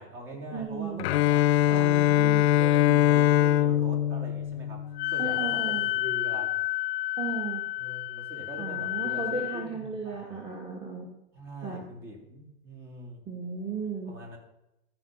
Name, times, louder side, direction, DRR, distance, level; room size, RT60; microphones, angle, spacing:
voice 1, 0.0-6.6 7.8-10.3 11.3-13.2 14.1-14.4, right 1 dB, 40° right, 0 dB, 3.6 m, -43 dB
voice 2, 0.5-1.0 1.7-2.5 5.2-5.9 7.2-7.6 8.6-11.1 11.6-11.9 13.3-14.1, right 4 dB, 15° right, -1 dB, 1.6 m, -35 dB
Bowed string instrument, 1.0-5.1, left 12 dB, 70° left, 0.6 m, -22 dB
Wind instrument woodwind instrument, 4.9-9.6, left 16 dB, 30° left, 0.7 m, -30 dB
14.0 x 4.9 x 5.5 m, 0.87 s
hypercardioid pair, 105°, 32 cm